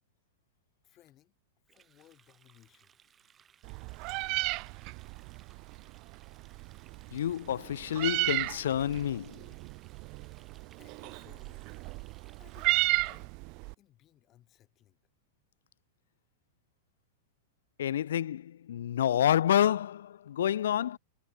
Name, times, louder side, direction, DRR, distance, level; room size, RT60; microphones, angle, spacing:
voice 1, 0.8-1.3 1.7-2.9 10.7-11.8 12.4-13.4 13.8-15.0, left 13 dB, 35° left, 5.9 m, -61 dB
Water tap faucet, 1.7-13.2, right 8 dB, 25° right, 6.2 m, -64 dB
Meow, 3.6-13.7, right 29 dB, 45° right, 0.4 m, -34 dB
voice 2, 7.1-9.4 17.8-21.0, left 10 dB, 80° left, 0.3 m, -28 dB
hypercardioid pair, 125°, 0 cm